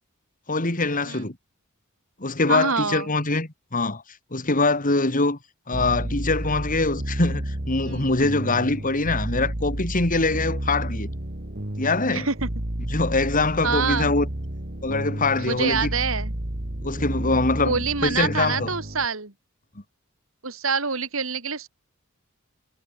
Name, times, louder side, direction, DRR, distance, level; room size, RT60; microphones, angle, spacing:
voice 1, 0.5-1.4 2.2-4.0 4.3-5.4 5.7-11.1 11.8-12.3 12.9-14.3 14.8-15.9 16.8-18.7, left 3 dB, 40° left, 2.9 m, -23 dB
voice 2, 2.5-3.1 7.8-8.1 12.1-12.5 13.6-14.1 15.4-16.3 17.6-19.3 20.4-21.7, right 5 dB, 75° right, 3.2 m, -26 dB
sound 1, 5.7-19.1, right 1 dB, 50° right, 2.7 m, -31 dB
head